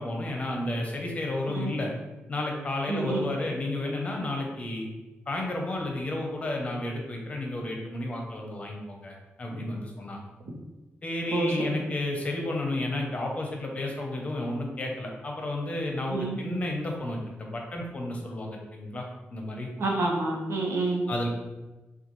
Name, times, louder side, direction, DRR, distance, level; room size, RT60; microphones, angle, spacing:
voice 1, 0.0-1.9 2.3-4.9 5.3-10.3 11.0-19.0 19.3-19.7 21.1-21.3, left 2 dB, 30° left, 0 dB, 0.7 m, -32 dB
voice 2, 2.9-3.3 11.3-11.7 16.1-16.4 19.8-21.0, right 2 dB, 85° right, 0 dB, 0.8 m, -28 dB
6.7 x 2.4 x 3.1 m, 1.1 s
wide cardioid pair, 180°, 4 cm